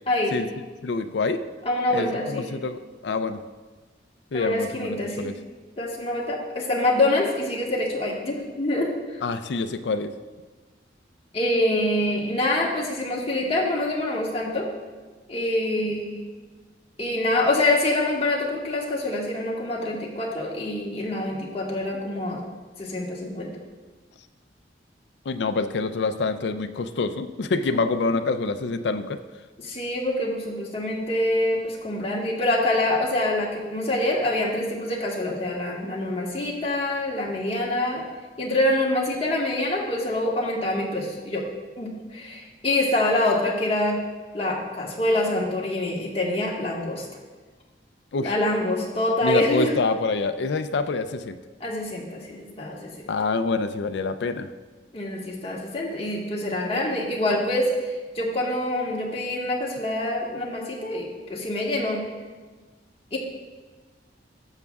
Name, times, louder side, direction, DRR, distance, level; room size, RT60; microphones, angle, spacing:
voice 1, 0.8-1.4 1.9-3.4 4.3-5.3 9.2-10.1 25.3-29.2 48.1-48.3 49.2-51.4 53.1-54.5, left 3 dB, 70° left, 9 dB, 0.4 m, -26 dB
voice 2, 1.6-2.5 4.3-5.3 5.8-9.2 11.3-14.7 15.3-16.1 17.0-22.4 22.8-23.5 27.7-27.8 29.6-38.0 38.4-41.4 41.8-44.0 44.3-47.0 48.2-49.7 51.6-52.9 54.9-57.9 58.1-62.1 63.1-63.2, left 1 dB, 35° left, -3 dB, 1.5 m, -25 dB
12.0 x 7.2 x 2.4 m, 1.3 s
head